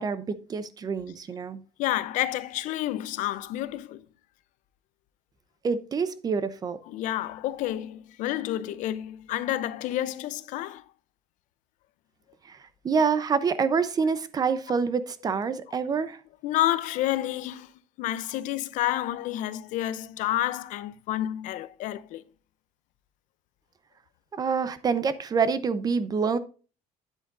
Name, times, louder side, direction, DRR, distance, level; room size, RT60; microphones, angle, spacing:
voice 1, 0.0-1.6 5.6-6.8 12.4-16.2 24.3-26.4, right 5 dB, 30° right, 0.7 m, -27 dB
voice 2, 1.8-4.0 6.9-10.8 16.4-17.7 18.0-22.2, left 14 dB, 70° left, 0.7 m, -29 dB
9.2 x 8.4 x 2.6 m
cardioid pair, 140°, 13 cm